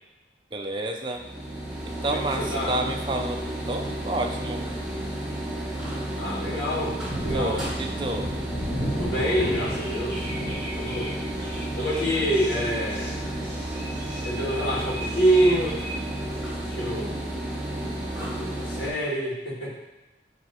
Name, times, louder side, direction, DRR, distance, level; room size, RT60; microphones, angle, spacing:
voice 1, 0.5-1.2 1.8-4.6 7.3-8.3, right 1 dB, 25° right, 3 dB, 0.5 m, -30 dB
sound 1, 1.2-18.9, right 1 dB, 5° right, 1.5 m, -32 dB
voice 2, 2.0-2.7 6.1-7.6 9.0-10.3 10.7-11.1 11.8-13.2 14.2-15.8 16.6-17.2 18.3-19.8, right 1 dB, 70° left, -8 dB, 2.1 m, -26 dB
Thunder, 5.1-15.3, equal, 35° left, 2.0 m, -37 dB
sound 2, 9.4-16.4, equal, 15° left, 1.8 m, -40 dB
9.3 x 3.4 x 4.4 m, 1.1 s
head